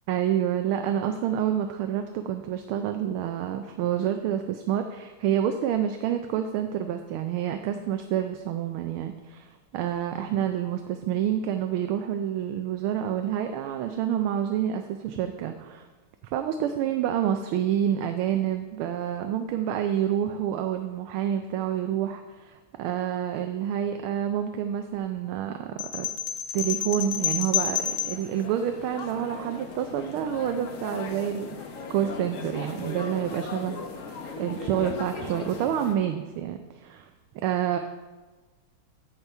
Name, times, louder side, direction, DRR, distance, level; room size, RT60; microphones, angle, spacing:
voice 1, 0.1-15.9 16.3-26.1 26.5-31.5 31.9-37.1 37.4-37.8, right 10 dB, 85° right, 6 dB, 1.5 m, -28 dB
sound 1, 25.8-28.3, left 9 dB, 75° left, 1.7 m, -29 dB
sound 2, 27.2-35.9, left 4 dB, 55° left, 0.9 m, -38 dB
9.8 x 8.2 x 3.5 m, 1.2 s
omnidirectional pair, 2.3 m